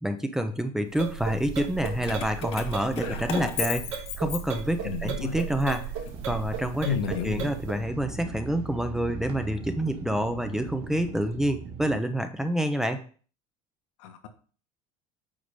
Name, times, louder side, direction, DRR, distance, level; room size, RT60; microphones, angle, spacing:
voice 1, 0.0-5.9 6.2-13.0, equal, 5° right, 6 dB, 0.4 m, -28 dB
sound 1, 0.9-7.8, right 7 dB, 80° right, 2.5 m, -35 dB
Keys jangling, 1.8-4.9 5.4-6.7, left 9 dB, 35° left, 0.8 m, -36 dB
voice 2, 4.8-5.4 6.8-7.5 14.0-14.3, left 7 dB, 85° left, 6 dB, 1.3 m, -31 dB
sound 2, 6.1-12.0, right 5 dB, 35° right, 1.5 m, -40 dB
8.9 x 3.4 x 5.1 m, 0.41 s
cardioid pair, 165°, 16 cm